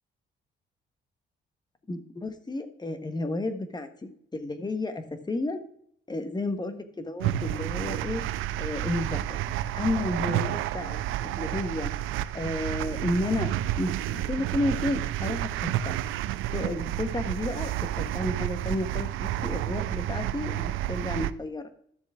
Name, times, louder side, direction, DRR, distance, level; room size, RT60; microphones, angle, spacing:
voice 1, 1.9-5.6 6.1-8.2 8.6-9.4 9.7-11.9 12.3-13.5 13.8-16.0 16.5-17.7 18.0-21.6, left 2 dB, 20° left, 8 dB, 1.4 m, -32 dB
sound 1, 7.2-21.3, right 13 dB, 90° right, 0.5 m, -30 dB
13.0 x 7.2 x 3.7 m, 0.66 s
cardioid pair, 90°, 20 cm